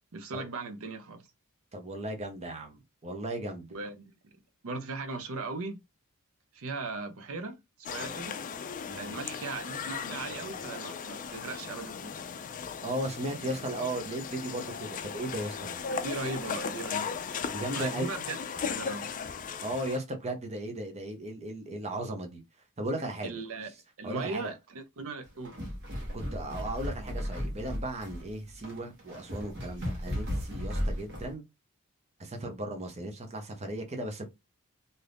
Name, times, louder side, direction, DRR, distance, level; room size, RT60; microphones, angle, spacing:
voice 1, 0.1-1.3 3.7-4.1 4.6-5.8 6.5-8.4 8.9-12.2 15.9-17.1 17.7-18.4 18.7-19.1 23.2-23.7 24.0-25.6 30.8-30.9, right 3 dB, 65° right, 0.6 m, -38 dB
voice 2, 1.7-3.7 8.9-9.1 12.8-15.8 17.5-18.1 19.6-22.4 22.8-23.3 24.0-24.5 26.1-31.4 32.2-34.2, right 1 dB, 30° right, 0.7 m, -36 dB
sound 1, 7.8-20.0, left 6 dB, 35° left, 0.3 m, -37 dB
sound 2, 25.3-31.3, equal, 50° right, 1.2 m, -35 dB
2.7 x 2.5 x 3.3 m
head